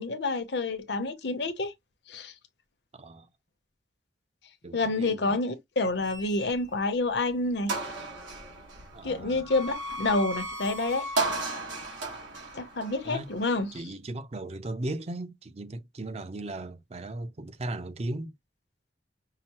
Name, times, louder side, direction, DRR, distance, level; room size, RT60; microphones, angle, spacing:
voice 1, 0.0-1.7 2.1-2.3 4.7-7.7 9.0-11.1 12.5-13.8, left 2 dB, 65° left, 0.8 m, -28 dB
voice 2, 2.9-3.3 4.6-5.4 8.9-9.4 13.0-13.3 13.7-18.3, right 1 dB, 35° right, 0.5 m, -37 dB
sound 1, 6.0-6.9 7.3-7.4 7.7-13.8, right 2 dB, 85° right, 1.5 m, -35 dB
5.7 x 2.0 x 2.9 m
head